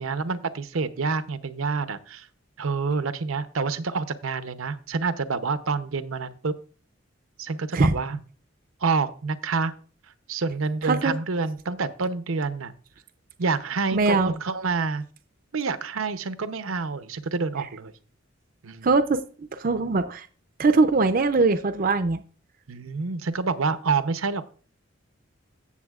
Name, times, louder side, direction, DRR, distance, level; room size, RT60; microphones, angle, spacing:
voice 1, 0.0-2.3 2.6-6.5 7.4-8.2 8.8-9.7 10.3-12.7 13.4-15.0 15.5-17.9 18.6-18.9 22.7-24.4, right 4 dB, 85° right, 12 dB, 0.7 m, -27 dB
voice 2, 10.8-11.1 13.9-14.3 18.8-20.3 20.6-22.2, right 3 dB, 40° right, 9 dB, 0.5 m, -21 dB
15.5 x 7.1 x 2.4 m, 0.40 s
head